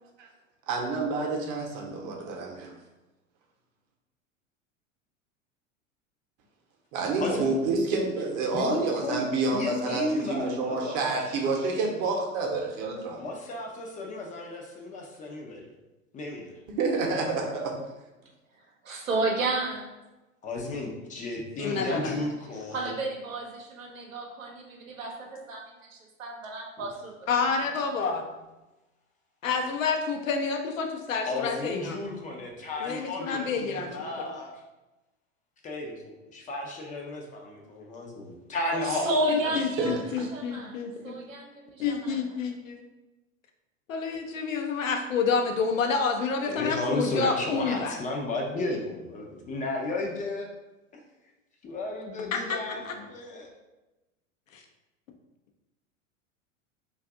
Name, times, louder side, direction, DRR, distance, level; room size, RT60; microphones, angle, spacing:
voice 1, 0.7-2.7 6.9-13.2 16.8-17.7 39.4-40.0, right 3 dB, 45° right, 1 dB, 0.8 m, -29 dB
voice 2, 7.2-7.5 8.5-9.2 9.5-11.4 13.2-15.7 16.1-16.6 20.4-23.0 26.8-26.9 31.3-34.5 35.6-39.1 46.5-50.5 50.9-51.0 51.6-52.8 53.1-53.5, left 2 dB, 20° left, 0 dB, 0.4 m, -33 dB
voice 3, 18.8-19.9 21.6-22.2 22.7-25.6 25.9-26.9 38.7-39.9 40.3-40.8 41.0-42.1, right 2 dB, 85° right, 0 dB, 0.7 m, -32 dB
voice 4, 21.6-22.2 27.3-28.2 29.4-32.0 32.8-34.3 39.3-41.2 41.8-42.8 43.9-48.0 52.3-52.6 52.9-53.0 54.5-54.6, left 5 dB, 75° left, 3 dB, 0.6 m, -29 dB
2.5 x 2.4 x 3.5 m, 1.1 s
hypercardioid pair, 85°, 39 cm